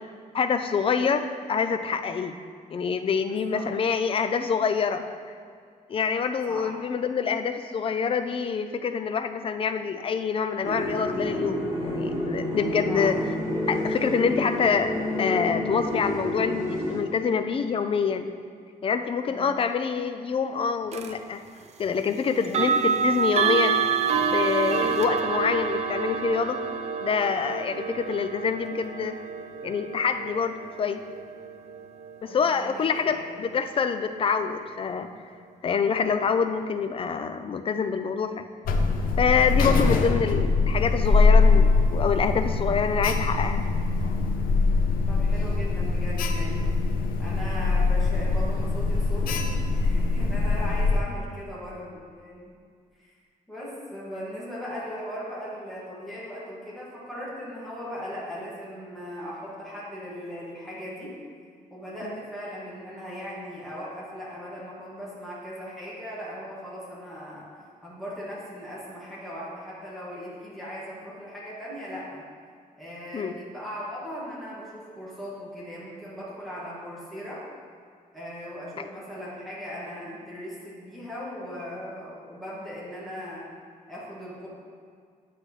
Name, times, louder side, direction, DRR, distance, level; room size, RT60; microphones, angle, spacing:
voice 1, 0.3-2.4 2.7-5.1 5.9-13.2 13.7-14.9 15.2-18.3 18.8-21.4 21.8-23.8 24.2-26.6 27.0-29.2 29.6-31.0 32.2-35.1 35.6-38.4 39.2-43.6 62.0-62.1 73.1-73.3 78.8-78.9, left 6 dB, 40° left, 9 dB, 0.4 m, -26 dB
voice 2, 3.2-3.7 6.5-6.8 12.9-13.1 19.3-19.5 32.3-33.4 45.1-46.7 47.2-52.5 53.0-53.1 53.5-61.2 61.7-67.5 67.8-72.2 72.8-77.4 78.1-83.5 83.9-84.5, equal, ahead, -8 dB, 1.9 m, -38 dB
sound 1, 10.6-17.0, left 1 dB, 25° right, 2.4 m, -29 dB
sound 2, 20.9-21.1 22.4-33.3, right 6 dB, 50° right, 0.5 m, -28 dB
Alarm, 38.6-51.0, left 3 dB, 80° left, 0.7 m, -23 dB
9.8 x 7.6 x 3.2 m, 2.1 s
wide cardioid pair, 150°, 15 cm